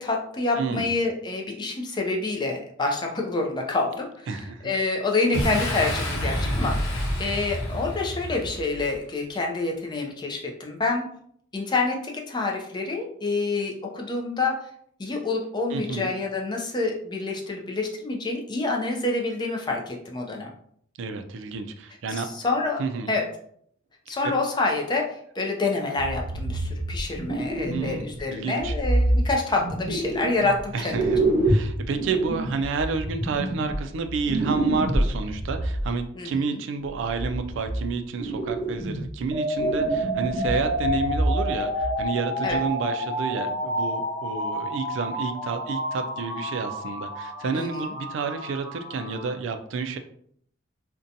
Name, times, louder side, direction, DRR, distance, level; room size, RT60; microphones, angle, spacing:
voice 1, 0.0-11.1 11.5-14.7 15.0-20.5 22.1-22.8 23.1-23.3 24.1-31.1 36.2-36.6 42.4-42.6 47.5-47.9, left 3 dB, 20° left, 1 dB, 0.3 m, -27 dB
voice 2, 0.6-0.9 4.3-4.7 15.7-16.1 21.0-22.3 22.8-23.1 24.1-24.3 27.7-28.7 30.7-50.0, right 4 dB, 65° right, 7 dB, 0.3 m, -30 dB
Boom, 5.3-8.9, equal, 85° left, 0.8 m, -28 dB
sound 1, 26.0-28.2 28.6-30.6 30.9-35.9 36.9-37.8 38.2-39.2 39.5-41.5 41.8-42.0 42.5-42.6, right 1 dB, 50° right, 0.8 m, -27 dB
sound 2, 39.3-49.3, equal, 45° left, 0.8 m, -30 dB
2.6 x 2.2 x 2.6 m, 0.65 s
head